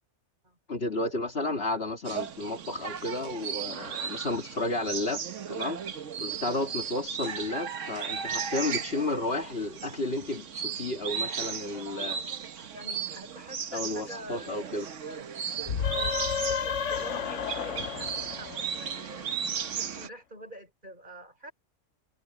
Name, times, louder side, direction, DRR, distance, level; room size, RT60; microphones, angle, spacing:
voice 1, 0.7-5.2 5.5-5.8 6.2-12.2 13.7-14.9, left 2 dB, 50° left, 2.3 m, -32 dB
sound 1, 2.1-20.1, right 7 dB, 70° right, 1.4 m, -36 dB
voice 2, 11.6-12.4 12.7-14.7 15.0-15.3 15.9-19.3 19.7-21.5, equal, 35° right, 5.4 m, -46 dB
sound 2, 15.6-19.2, left 7 dB, 70° left, 1.2 m, -32 dB
omnidirectional pair, 1.3 m